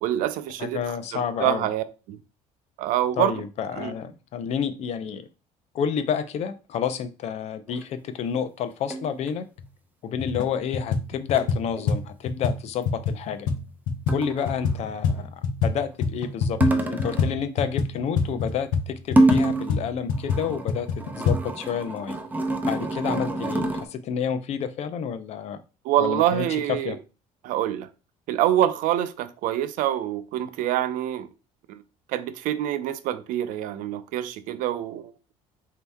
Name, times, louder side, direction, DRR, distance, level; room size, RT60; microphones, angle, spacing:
voice 1, 0.0-2.2 2.8-3.4 3.8-3.9 25.8-27.0 27.4-27.9 28.3-31.3 31.7-31.8 32.1-35.1, right 12 dB, 75° right, 0.5 m, -26 dB
voice 2, 0.6-1.7 3.2-5.2 5.7-9.4 10.0-13.5 14.1-15.3 15.6-20.9 21.2-22.2 22.7-25.6 26.0-26.4 26.8-27.0, left 7 dB, 50° left, 0.5 m, -29 dB
sound 1, 7.7-7.8 8.9-9.3 11.4-11.5 11.8-11.9 14.1-14.6 16.6-17.4 19.1-19.8 20.1-23.9, right 1 dB, 10° right, 0.5 m, -25 dB
sound 2, 9.6-9.7 10.1-10.5 10.7-15.7 16.0-21.4, left 5 dB, 85° left, 0.7 m, -26 dB
4.3 x 2.8 x 3.4 m
cardioid pair, 135°, 14 cm